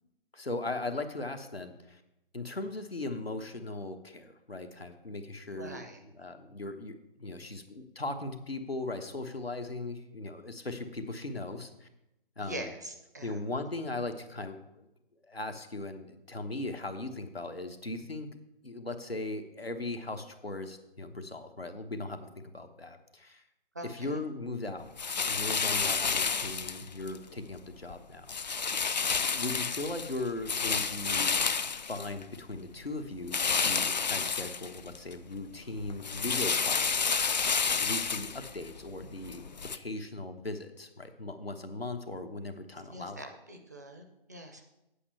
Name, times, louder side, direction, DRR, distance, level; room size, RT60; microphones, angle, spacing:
voice 1, 0.3-2.0 2.3-11.9 12.4-12.7 13.2-14.9 15.2-18.4 18.6-23.4 23.8-24.9 25.2-28.7 29.3-31.4 31.6-39.4 39.7-43.2, left 2 dB, 90° left, 6 dB, 1.2 m, -38 dB
voice 2, 5.5-6.0 12.4-13.4 23.7-24.2 42.9-44.6, right 1 dB, 20° right, 4 dB, 0.5 m, -43 dB
sound 1, 25.0-27.2 27.6-27.9 28.3-32.6 33.3-35.1 35.5-39.8, left 5 dB, 45° left, 0.4 m, -30 dB
8.5 x 5.3 x 7.7 m, 0.88 s
figure-of-eight pair, 145°, 30 cm